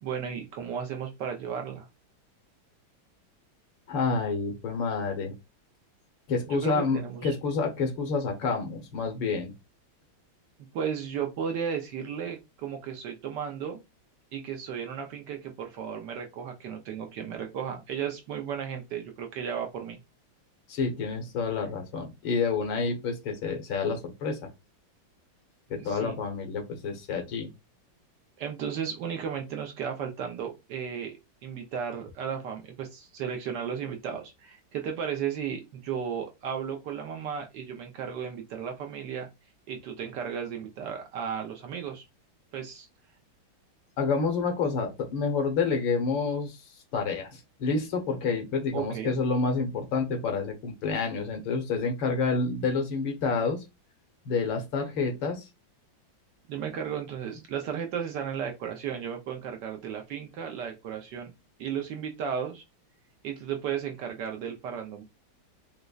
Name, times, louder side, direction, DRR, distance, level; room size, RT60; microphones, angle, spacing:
voice 1, 0.0-1.9 6.5-7.3 10.7-13.8 14.3-20.0 25.7-26.1 28.4-31.1 31.4-39.3 39.7-42.0 42.5-42.9 48.7-49.1 56.5-61.3 61.6-62.6 63.2-65.0, right 7 dB, 70° right, 3 dB, 1.1 m, -34 dB
voice 2, 3.9-5.3 6.3-9.5 20.7-24.4 25.7-27.5 44.0-46.6 46.9-53.6 54.2-55.5, left 4 dB, 75° left, 3 dB, 1.7 m, -28 dB
4.9 x 2.1 x 2.3 m, 0.23 s
omnidirectional pair, 2.2 m